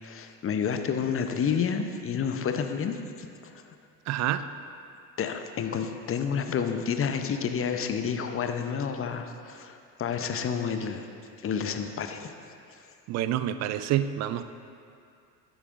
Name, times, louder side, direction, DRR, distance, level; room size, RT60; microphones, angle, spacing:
voice 1, 0.0-3.6 5.2-11.1 11.4-12.3, left 6 dB, 25° left, 7 dB, 0.7 m, -30 dB
voice 2, 4.1-4.4 13.1-14.4, right 11 dB, 35° right, 12 dB, 0.4 m, -27 dB
12.0 x 10.0 x 2.6 m, 2.5 s
figure-of-eight pair, 65°, 50 cm